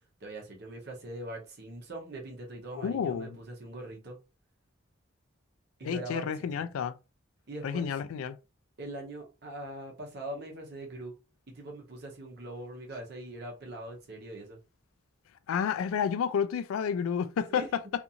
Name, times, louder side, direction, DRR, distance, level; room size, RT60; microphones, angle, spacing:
voice 1, 0.2-4.2 5.8-6.7 7.5-7.9 8.8-11.1 11.5-14.6 17.5-17.7, right 1 dB, 55° right, 0.8 m, -42 dB
voice 2, 2.7-3.4 5.8-7.0 7.6-8.4 15.5-17.8, left 7 dB, 90° left, 0.3 m, -30 dB
2.5 x 2.5 x 2.8 m
head